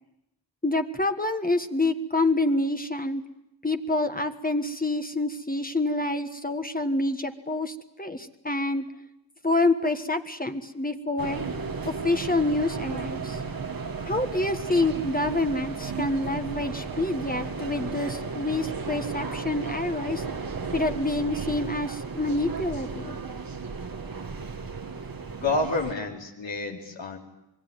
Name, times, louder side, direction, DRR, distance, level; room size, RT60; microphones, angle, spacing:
voice 1, 0.6-3.2 3.6-8.9 9.4-11.4 11.8-13.4 14.0-20.2 20.7-23.2, left 2 dB, 20° left, 6 dB, 1.6 m, -27 dB
sound 1, 11.2-25.9, right 4 dB, 55° right, 1.8 m, -34 dB
voice 2, 25.4-27.2, left 2 dB, 90° left, 0 dB, 4.4 m, -28 dB
26.5 x 21.5 x 9.3 m, 0.88 s
wide cardioid pair, 70°, 43 cm